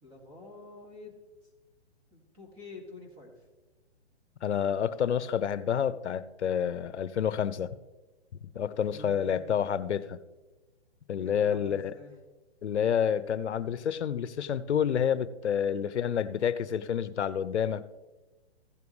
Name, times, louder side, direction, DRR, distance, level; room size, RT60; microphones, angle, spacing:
voice 1, 0.0-1.1 2.1-3.3 8.9-9.5 11.2-12.1, left 2 dB, 15° right, -1 dB, 2.1 m, -48 dB
voice 2, 4.4-7.8 8.5-10.2 11.1-11.9 12.6-17.9, left 8 dB, 90° left, 15 dB, 0.7 m, -29 dB
15.0 x 7.0 x 3.2 m, 1.1 s
hypercardioid pair, 150°, 33 cm